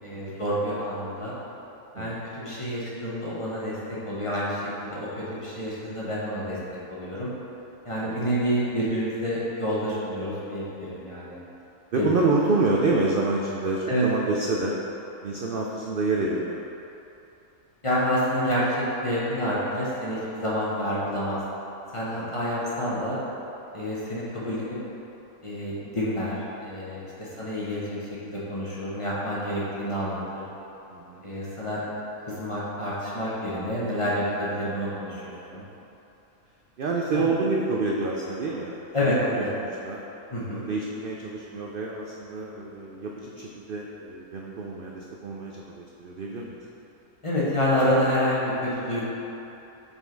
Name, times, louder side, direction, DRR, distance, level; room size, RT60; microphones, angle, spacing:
voice 1, 0.0-1.3 1.9-3.8 4.0-6.6 6.9-7.3 7.8-11.4 11.9-12.1 13.9-14.0 17.8-21.4 21.9-23.2 23.7-24.8 25.4-30.4 31.2-31.8 32.2-35.6 37.1-37.3 38.9-39.5 40.3-40.6 47.2-49.1, equal, 25° left, -8 dB, 1.0 m, -28 dB
voice 2, 11.9-14.8 15.2-16.7 22.1-22.3 27.2-27.4 30.9-31.2 35.5-35.6 36.8-40.0 40.5-46.6, right 3 dB, 85° right, -2 dB, 0.4 m, -28 dB
5.4 x 4.2 x 4.5 m, 3.0 s
omnidirectional pair, 1.5 m